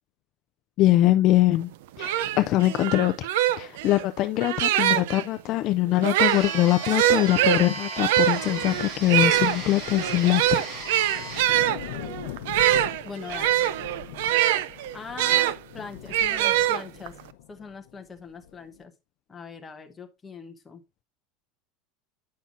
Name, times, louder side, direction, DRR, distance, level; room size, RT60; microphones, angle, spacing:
voice 1, 0.8-1.7 2.0-3.3 3.6-10.6, left 15 dB, 40° left, 0.3 m, -22 dB
sound 1, 1.6-1.7 2.0-5.2 5.9-15.6 16.1-17.2, right 13 dB, 75° right, 0.4 m, -24 dB
sound 2, 6.2-11.4, right 3 dB, 60° right, 2.7 m, -36 dB
sound 3, 8.6-18.8, left 12 dB, 90° left, 0.7 m, -41 dB
voice 2, 13.0-13.6 14.9-17.1 17.5-18.9 19.3-20.8, left 4 dB, 15° left, 0.9 m, -41 dB
8.5 x 5.7 x 2.5 m
supercardioid pair, 165°, 0 cm